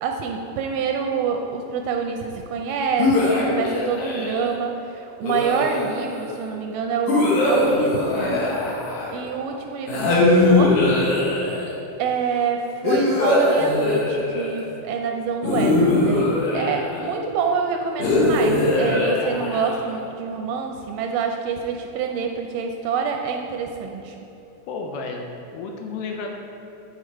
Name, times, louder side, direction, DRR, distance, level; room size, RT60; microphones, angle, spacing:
voice 1, 0.0-8.4 9.1-10.8 12.0-24.2, right 6 dB, 80° right, 3 dB, 2.0 m, -27 dB
sound 1, 3.0-4.5 5.2-6.2 7.1-9.3 9.9-11.7 12.8-14.6 15.4-17.1 18.0-20.0, left 2 dB, 65° left, 2.3 m, -21 dB
voice 2, 24.7-26.3, left 4 dB, 80° left, 2 dB, 2.0 m, -32 dB
9.6 x 4.9 x 4.5 m, 3.0 s
omnidirectional pair, 4.1 m